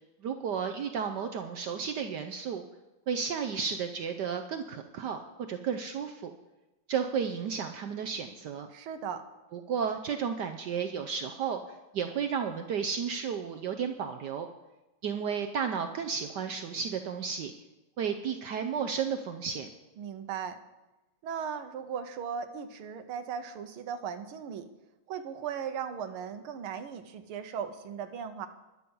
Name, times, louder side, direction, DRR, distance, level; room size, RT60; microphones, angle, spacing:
voice 1, 0.2-2.6 3.1-6.3 6.9-8.7 9.5-11.6 11.9-14.5 15.0-17.5 18.0-19.7, right 7 dB, 65° right, 6 dB, 1.1 m, -33 dB
voice 2, 8.7-9.3 20.0-20.6 21.2-24.7 25.1-28.5, right 7 dB, 85° right, 8 dB, 1.8 m, -37 dB
12.0 x 10.5 x 5.5 m, 1.0 s
omnidirectional pair, 2.3 m